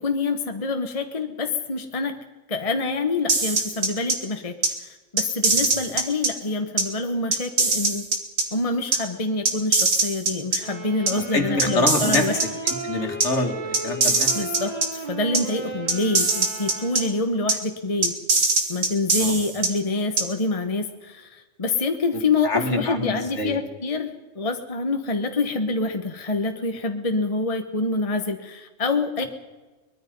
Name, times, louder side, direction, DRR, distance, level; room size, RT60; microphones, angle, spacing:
voice 1, 0.0-2.2 2.5-8.1 8.5-12.4 14.3-18.1 18.7-29.2, left 3 dB, 25° left, 6 dB, 1.3 m, -26 dB
sound 1, 3.3-4.1 4.6-4.7 5.2-6.3 6.8-6.9 7.3-8.4 8.9-9.0 9.4-10.6 11.1-11.2 11.6-12.7 13.2-13.3 13.7-14.9 15.3-15.4 15.9-17.0 17.5-17.6 18.0-19.7 20.2-20.3, right 3 dB, 70° right, 2.6 m, -21 dB
sound 2, 10.5-17.4, right 3 dB, 30° right, 3.4 m, -35 dB
voice 2, 11.1-12.3 12.6-14.4 19.2-19.4 22.4-23.6, left 2 dB, 55° left, 5 dB, 2.7 m, -26 dB
23.0 x 21.0 x 5.4 m, 1.2 s
omnidirectional pair, 1.4 m